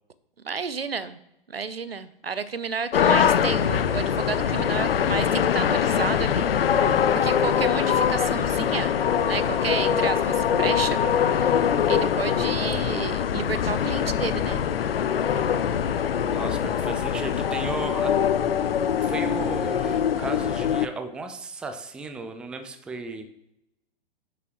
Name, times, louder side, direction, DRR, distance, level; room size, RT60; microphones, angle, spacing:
voice 1, 0.4-1.2 1.5-6.9 7.2-9.0 9.3-11.1 11.3-11.5 11.9-14.6, right 5 dB, 90° right, 14 dB, 0.7 m, -31 dB
sound 1, 2.9-20.9, left 8 dB, 75° left, 0.5 m, -23 dB
voice 2, 16.3-18.2 19.0-23.3, right 3 dB, 5° right, 8 dB, 0.4 m, -35 dB
10.5 x 6.1 x 3.1 m, 0.83 s
figure-of-eight pair, 110°, 29 cm